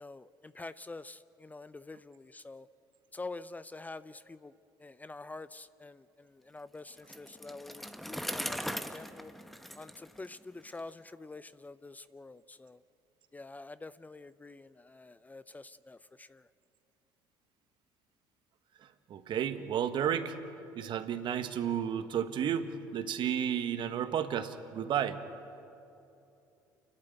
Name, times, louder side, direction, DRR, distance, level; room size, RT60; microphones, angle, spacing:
voice 1, 0.0-2.7 3.1-4.5 4.8-9.3 9.7-12.8 13.3-16.4, left 3 dB, 15° left, 16 dB, 0.6 m, -47 dB
Bicycle, 7.0-10.8, equal, ahead, 1.2 m, -40 dB
voice 2, 19.1-20.4 20.7-25.2, right 9 dB, 55° right, 9 dB, 1.5 m, -32 dB
29.5 x 12.0 x 9.1 m, 2.8 s
hypercardioid pair, 60°, 10 cm